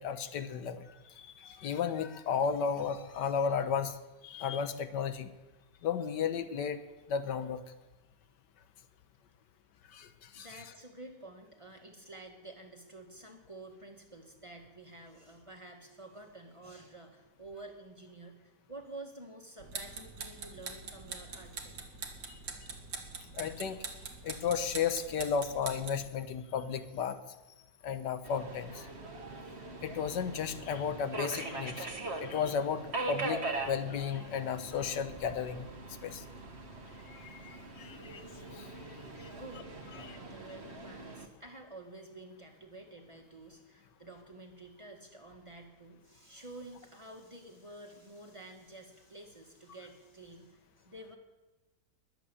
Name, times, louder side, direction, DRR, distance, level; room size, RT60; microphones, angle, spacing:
voice 1, 0.0-4.0 4.2-5.3 5.8-6.8 7.1-7.6 9.9-10.5 22.3-22.4 23.3-23.8 24.2-27.2 27.8-28.9 29.8-31.9 32.2-35.7 36.0-36.2 37.1-38.3 38.5-38.7 39.2-39.3 40.0-40.2, left 7 dB, 90° left, 10 dB, 1.6 m, -34 dB
voice 2, 10.3-21.8 39.3-51.2, right 2 dB, 20° right, 2 dB, 1.8 m, -50 dB
sound 1, 19.6-26.1, right 4 dB, 80° right, 2.3 m, -43 dB
Subway metro underground, 28.2-41.3, right 3 dB, 40° right, 1.6 m, -41 dB
21.0 x 8.1 x 7.1 m, 1.1 s
omnidirectional pair, 1.8 m